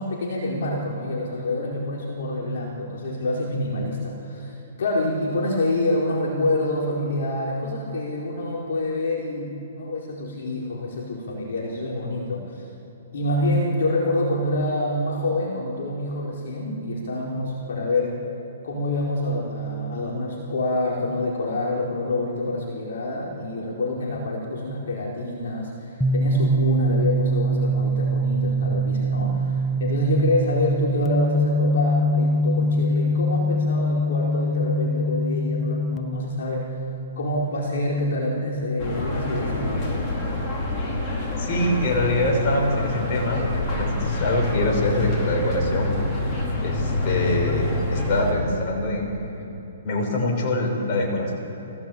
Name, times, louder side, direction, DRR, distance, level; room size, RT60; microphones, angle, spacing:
voice 1, 0.0-12.7 13.1-18.2 18.6-36.7 37.1-40.0, left 1 dB, 70° left, -3 dB, 4.6 m, -26 dB
sound 1, 26.0-39.6, right 1 dB, 5° left, 1.1 m, -24 dB
sound 2, 38.8-48.3, left 2 dB, 25° left, 4.5 m, -26 dB
voice 2, 41.4-43.4 43.8-45.9 46.2-46.3 46.6-49.1 49.8-51.3, left 1 dB, 40° left, 0 dB, 6.5 m, -24 dB
23.5 x 17.5 x 8.6 m, 2.8 s
hypercardioid pair, 150°, 0 cm